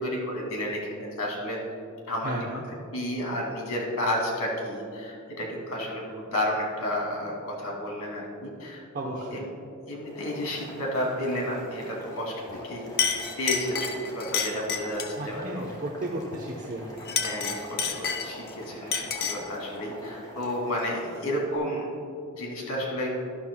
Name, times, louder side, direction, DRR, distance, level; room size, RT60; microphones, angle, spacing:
voice 1, 0.0-1.6 2.1-2.3 2.9-9.5 9.9-12.3 12.6-15.7 17.1-21.9 22.4-23.1, equal, 85° left, -2 dB, 2.5 m, -31 dB
voice 2, 2.2-2.6 8.9-9.4 15.2-17.0, right 1 dB, 40° right, -1 dB, 0.8 m, -34 dB
Boiling, 10.0-21.6, equal, 20° left, 2.3 m, -44 dB
Chink clink, 12.5-12.7 13.0-15.2 17.0-18.5 18.9-19.5, left 6 dB, 45° left, 0.8 m, -29 dB
12.5 x 11.5 x 2.2 m, 2.6 s
head